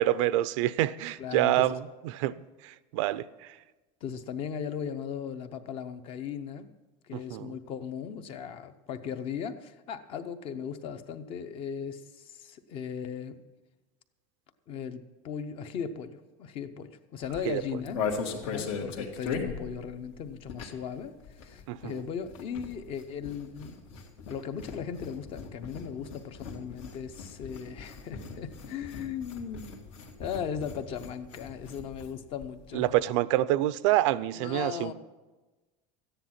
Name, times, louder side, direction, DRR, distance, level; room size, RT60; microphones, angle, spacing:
voice 1, 0.0-1.8 2.0-2.3 2.6-3.5 7.1-7.5 17.5-17.6 21.7-22.0 32.7-34.9, right 15 dB, 75° right, 16 dB, 0.5 m, -27 dB
voice 2, 1.2-1.8 4.0-6.7 7.1-13.4 14.7-18.0 18.4-23.8 24.3-29.8 30.2-32.8 34.3-34.9, left 7 dB, 35° left, 11 dB, 0.7 m, -37 dB
sound 1, 17.2-21.0 21.2-32.1 32.4-32.5 32.7-33.0, left 5 dB, 75° left, 2.0 m, -39 dB
14.0 x 9.9 x 5.9 m, 1.2 s
cardioid pair, 175°, 16 cm